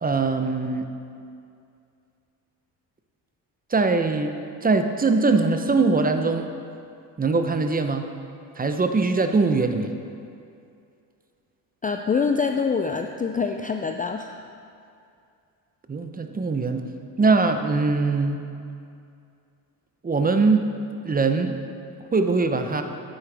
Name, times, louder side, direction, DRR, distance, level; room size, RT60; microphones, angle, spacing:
voice 1, 0.0-0.9 3.7-4.3 4.6-6.5 7.2-8.1 8.6-9.9 15.9-16.8 17.2-18.4 20.0-20.7 21.0-21.6 22.0-22.8, right 3 dB, 20° right, 6 dB, 0.7 m, -22 dB
voice 2, 11.8-14.5, left 5 dB, 20° left, 5 dB, 0.4 m, -25 dB
9.7 x 9.0 x 3.4 m, 2.5 s
supercardioid pair, 75°, 43 cm